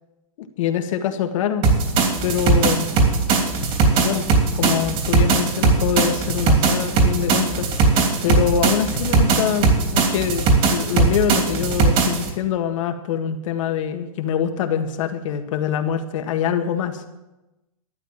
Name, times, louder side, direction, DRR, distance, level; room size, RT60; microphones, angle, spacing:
voice 1, 0.4-1.7 2.2-2.9 4.0-4.3 4.6-7.7 8.2-17.1, left 9 dB, 60° left, 6 dB, 1.7 m, -24 dB
sound 1, 1.6-12.3, right 4 dB, 35° right, 3.1 m, -19 dB
13.0 x 8.9 x 7.4 m, 0.98 s
hypercardioid pair, 130°, 18 cm